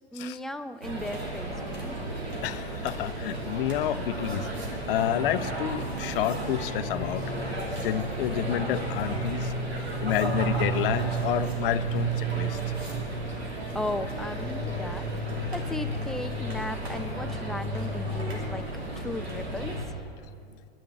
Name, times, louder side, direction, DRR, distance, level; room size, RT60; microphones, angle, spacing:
voice 1, 0.1-2.0 13.7-18.6 19.0-20.0, left 1 dB, ahead, 8 dB, 0.5 m, -36 dB
sound 1, 0.8-19.9, right 2 dB, 85° right, 2.9 m, -32 dB
voice 2, 2.4-4.5 4.9-7.2 7.8-9.5 10.0-12.6, left 10 dB, 60° left, 13 dB, 0.7 m, -29 dB
11.5 x 10.5 x 6.9 m, 2.5 s
figure-of-eight pair, 90°, 31 cm